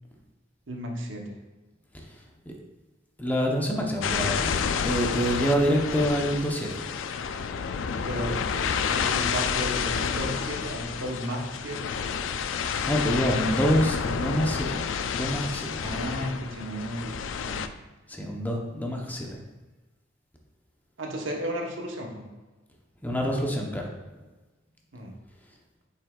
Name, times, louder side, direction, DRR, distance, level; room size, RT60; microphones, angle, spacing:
voice 1, 0.7-1.3 8.0-8.6 8.9-11.9 15.8-17.1 17.4-17.6 21.0-22.2 24.9-25.2, equal, 85° right, 1 dB, 1.1 m, -34 dB
voice 2, 3.2-6.8 12.9-14.8 15.1-15.8 18.1-19.4 23.0-23.9, equal, 10° left, 0 dB, 0.9 m, -26 dB
sound 1, 4.0-17.7, left 6 dB, 90° left, 0.4 m, -29 dB
7.3 x 5.6 x 2.4 m, 1.2 s
head